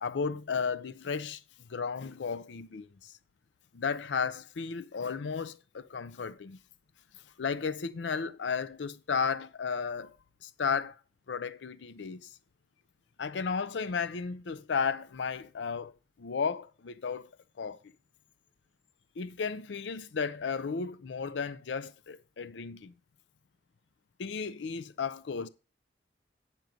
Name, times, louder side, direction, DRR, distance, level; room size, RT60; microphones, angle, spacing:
voice 1, 0.0-1.4 1.7-3.1 3.7-6.6 7.4-10.1 10.4-11.0 11.3-12.3 13.2-15.9 16.2-17.3 17.6-17.8 19.2-22.9 24.2-25.5, left 5 dB, 75° left, 0.5 m, -34 dB
9.3 x 6.0 x 5.1 m
head